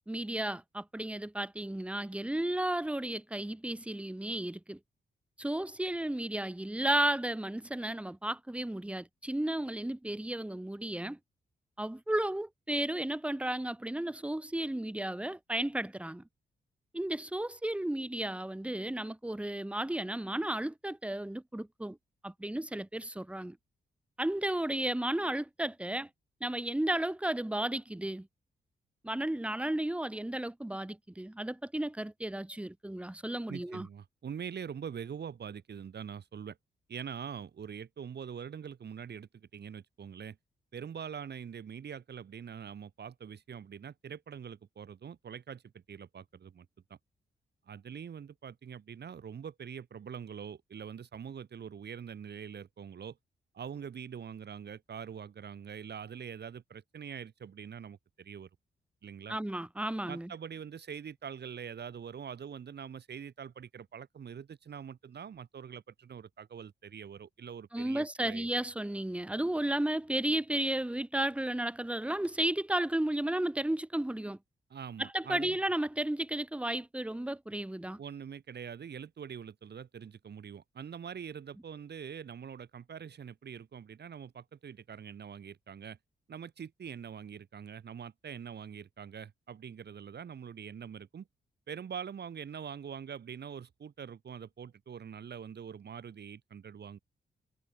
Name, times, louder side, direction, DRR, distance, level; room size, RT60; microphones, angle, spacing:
voice 1, 0.1-4.8 5.4-11.2 11.8-16.2 16.9-22.0 22.2-23.6 24.2-26.1 26.4-28.3 29.0-33.9 59.3-60.3 67.7-74.4 75.0-78.0, right 1 dB, 5° right, 0.7 m, -33 dB
voice 2, 33.5-36.6 36.9-40.4 40.7-46.7 47.7-53.2 53.5-58.5 59.0-59.4 60.1-68.5 74.7-75.6 78.0-86.0 86.3-91.3 91.7-97.0, right 7 dB, 60° right, 1.3 m, -44 dB
supercardioid pair, 50°, 19 cm